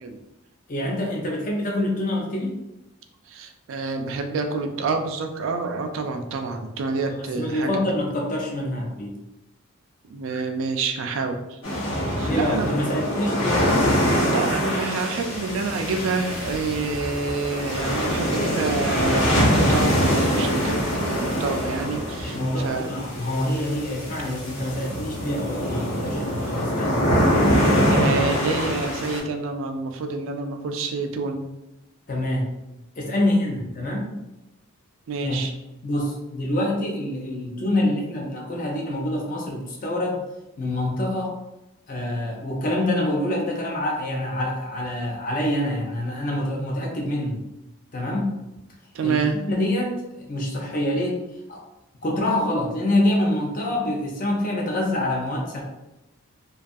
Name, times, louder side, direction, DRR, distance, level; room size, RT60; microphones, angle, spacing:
voice 1, 0.7-2.6 7.4-9.1 12.2-13.7 22.2-27.1 32.1-32.5 33.0-34.2 35.2-35.5 35.8-40.2 40.6-41.4 41.9-47.4 47.9-48.3 49.0-49.2 49.5-51.2 51.5-51.6 52.0-55.6, left 1 dB, 35° left, -1 dB, 0.5 m, -26 dB
voice 2, 3.3-7.7 10.1-11.6 12.1-12.7 14.3-23.1 23.6-23.7 27.9-31.4 35.1-35.5 48.9-49.4, right 4 dB, 60° right, 5 dB, 0.3 m, -28 dB
sound 1, 11.6-29.2, equal, 60° left, 0.8 m, -24 dB
2.3 x 2.3 x 2.5 m, 0.95 s
head